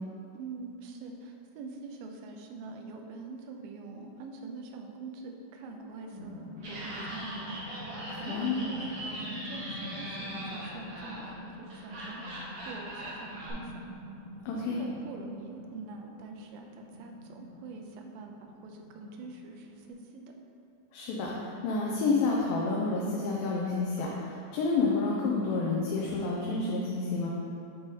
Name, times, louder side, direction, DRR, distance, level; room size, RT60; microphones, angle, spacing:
voice 1, 0.3-7.8 8.2-13.8 14.6-20.2, right 4 dB, 85° right, 3 dB, 2.4 m, -44 dB
sound 1, 5.6-19.9, left 1 dB, 65° left, 2.2 m, -46 dB
Laughter, 6.6-13.5, right 1 dB, 55° right, 2.3 m, -41 dB
voice 2, 8.3-8.6 14.5-14.8 20.9-27.3, left 3 dB, 80° left, -3 dB, 2.3 m, -29 dB
8.5 x 3.9 x 4.0 m, 2.6 s
omnidirectional pair, 4.2 m